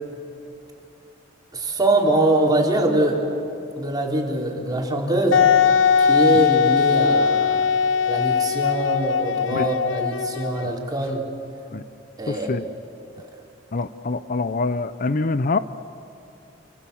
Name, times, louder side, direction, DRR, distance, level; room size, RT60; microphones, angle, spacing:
voice 1, 1.5-3.2 3.7-5.4 6.0-7.6 8.0-11.2 12.2-12.5, right 1 dB, 20° right, -1 dB, 4.4 m, -23 dB
Wind instrument woodwind instrument, 5.3-10.9, left 6 dB, 85° left, 0.8 m, -20 dB
voice 2, 12.3-12.6 13.7-15.6, left 3 dB, 45° left, 13 dB, 0.6 m, -25 dB
29.5 x 25.5 x 7.2 m, 2.9 s
head